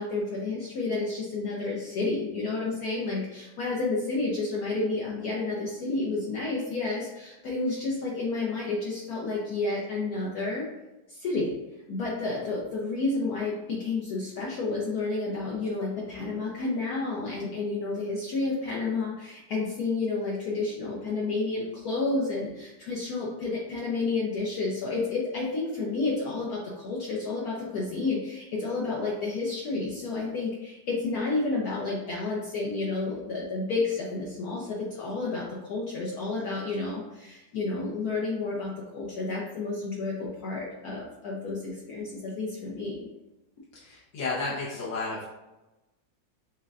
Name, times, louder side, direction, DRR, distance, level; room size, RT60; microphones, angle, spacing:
voice 1, 0.0-10.7 11.1-11.5 11.9-43.0, left 3 dB, 65° left, -5 dB, 1.0 m, -30 dB
voice 2, 43.7-45.2, left 3 dB, 80° left, -8 dB, 1.5 m, -32 dB
6.3 x 2.2 x 2.4 m, 1.0 s
omnidirectional pair, 2.0 m